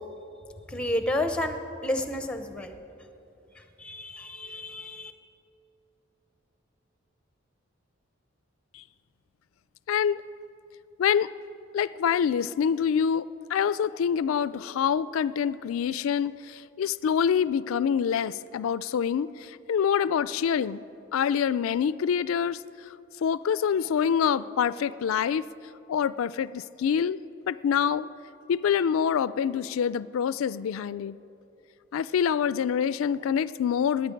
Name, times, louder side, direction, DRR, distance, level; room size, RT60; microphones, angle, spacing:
voice 1, 0.7-1.6 1.8-2.8 3.8-5.1, left 1 dB, 5° left, 7 dB, 0.7 m, -30 dB
voice 2, 9.9-10.2 11.0-11.3 11.7-20.8 21.1-22.6 23.2-25.4 25.9-27.2 27.5-28.1 28.5-31.2 31.9-34.1, left 7 dB, 85° left, 17 dB, 0.3 m, -26 dB
19.0 x 9.1 x 5.2 m, 2.7 s
head